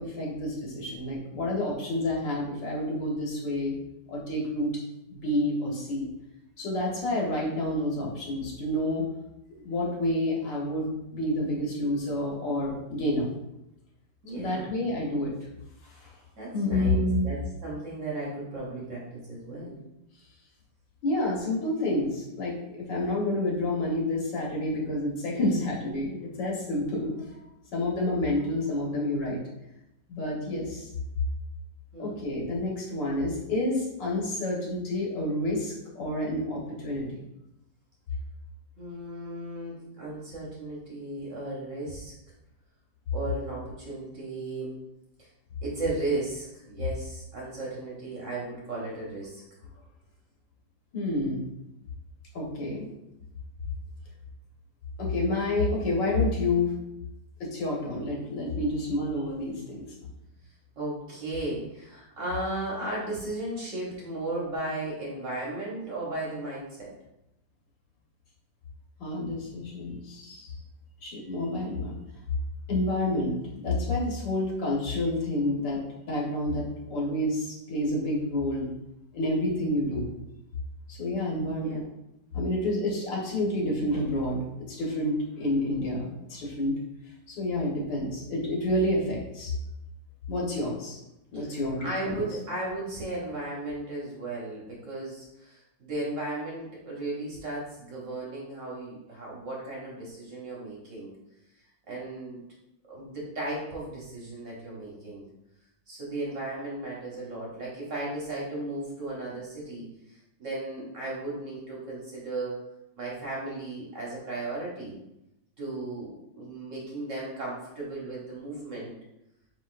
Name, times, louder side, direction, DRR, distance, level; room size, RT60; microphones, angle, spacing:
voice 1, 0.0-3.7 4.1-4.7 5.1-6.1 6.6-9.1 9.6-13.3 14.3-15.3 16.0-16.1 16.5-17.3 21.0-27.1 27.7-29.4 30.1-30.9 32.0-37.2 50.9-51.4 52.3-52.9 55.0-56.7 57.4-59.8 69.0-70.5 71.0-72.0 72.7-75.8 76.1-78.7 79.1-80.1 80.9-81.8 82.3-86.8 87.3-89.5 90.3-91.0 91.3-91.8 92.0-92.2, left 1 dB, 75° left, -3 dB, 1.8 m, -29 dB
voice 2, 14.2-14.8 16.4-19.8 31.9-32.2 38.8-42.1 43.1-44.8 45.2-45.3 45.6-49.4 60.8-66.9 81.4-81.8 91.3-101.1 101.9-102.4 102.9-105.2 105.9-109.9 110.4-112.6 113.0-114.9 115.6-118.9, right 2 dB, 50° right, -4 dB, 1.1 m, -35 dB
4.7 x 4.0 x 2.4 m, 0.87 s
omnidirectional pair, 2.0 m